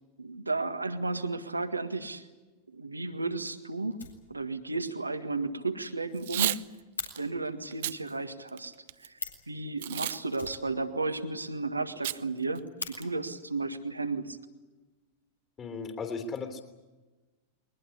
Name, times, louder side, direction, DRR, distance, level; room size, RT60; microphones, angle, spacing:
voice 1, 0.2-2.2 2.7-4.0 4.3-6.6 7.2-8.7 9.0-9.1 9.5-14.4, right 3 dB, 80° right, 9 dB, 1.7 m, -33 dB
Fire, 2.7-2.8 3.2-3.3 3.5-3.6 3.9-4.7 5.0-5.1 5.5-5.6 5.8-5.9 6.2-7.1 8.9-9.0 9.1-9.5 10.3-11.2 11.5-11.6 11.9-12.0 12.4-12.9 13.9-14.1 14.7-15.3, left 4 dB, 80° left, 3.8 m, -42 dB
Packing tape duct tape / Tearing, 6.1-6.6 7.1-7.2 7.7-8.0 8.5-9.1 9.8-10.2 10.5-10.6 12.0-12.2 12.6-12.7 12.9-13.3, right 14 dB, 55° right, 0.7 m, -31 dB
voice 2, 15.6-16.6, left 4 dB, 25° left, 8 dB, 3.3 m, -36 dB
22.5 x 20.5 x 9.9 m, 1.2 s
figure-of-eight pair, 90°, 0 cm